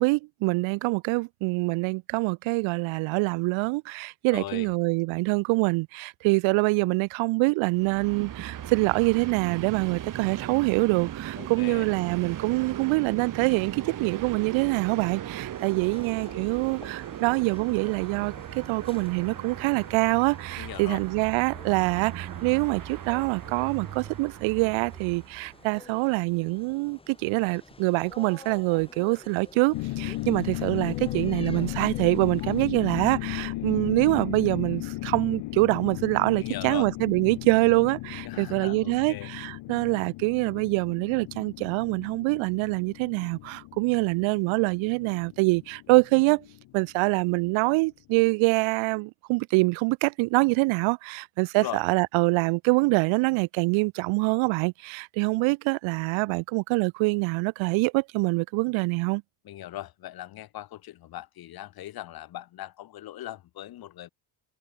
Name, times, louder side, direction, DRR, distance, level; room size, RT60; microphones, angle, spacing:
voice 1, 0.0-46.4 46.7-59.2, right 26 dB, 85° right, 0.5 m, -25 dB
voice 2, 4.3-4.7 11.4-11.9 20.6-21.0 36.4-36.9 38.2-39.3 51.6-51.8 59.4-64.1, left 13 dB, 50° left, 1.8 m, -39 dB
Train, 7.7-25.8, right 11 dB, 45° right, 2.3 m, -38 dB
sound 1, 15.5-32.6, left 3 dB, 10° left, 2.3 m, -50 dB
sound 2, 29.7-46.9, left 19 dB, 80° left, 2.8 m, -35 dB
cardioid pair, 160°, 46 cm